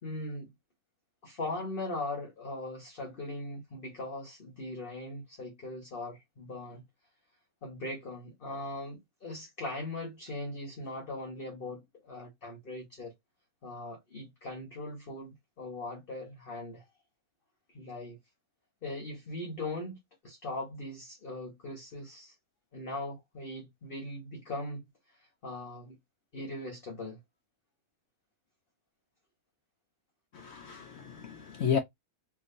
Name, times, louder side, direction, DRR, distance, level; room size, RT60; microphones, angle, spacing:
voice 1, 0.0-0.5 1.2-6.8 7.6-13.1 13.6-16.8 17.7-18.2 18.8-20.0 20.2-22.3 22.7-24.8 25.2-26.0 26.3-27.2, left 2 dB, 40° left, 1.0 m, -40 dB
voice 2, 30.3-31.8, left 7 dB, 65° left, 0.7 m, -32 dB
3.4 x 2.8 x 2.6 m
omnidirectional pair, 1.7 m